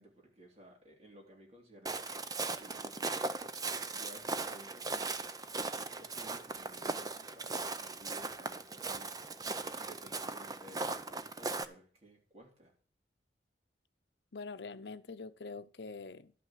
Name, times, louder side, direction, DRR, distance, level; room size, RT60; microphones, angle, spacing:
voice 1, 0.0-2.0 2.5-3.1 3.9-5.1 5.7-9.1 9.8-12.7, right 1 dB, 35° right, 3.7 m, -56 dB
Walk footsteps, 1.9-11.7, right 3 dB, 20° right, 0.7 m, -38 dB
voice 2, 14.3-16.3, left 4 dB, 75° left, 0.7 m, -44 dB
12.0 x 5.9 x 7.5 m
head